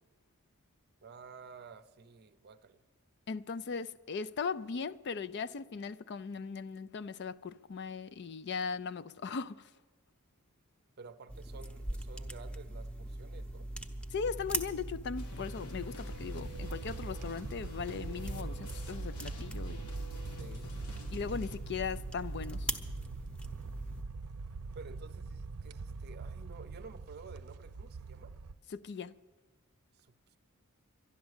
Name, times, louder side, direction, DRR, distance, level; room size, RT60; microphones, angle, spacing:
voice 1, 1.0-2.8 11.0-13.7 20.4-20.7 24.7-28.4 29.9-30.4, right 4 dB, 45° right, 0.6 m, -52 dB
voice 2, 3.3-9.7 14.1-19.9 21.1-22.7 28.7-29.1, left 5 dB, 50° left, 0.4 m, -38 dB
sound 1, 11.3-24.0, right 1 dB, 5° left, 0.8 m, -41 dB
sound 2, 15.2-21.6, left 1 dB, 85° left, 1.4 m, -50 dB
sound 3, 16.1-28.5, right 4 dB, 85° right, 0.6 m, -44 dB
12.0 x 11.5 x 8.0 m
head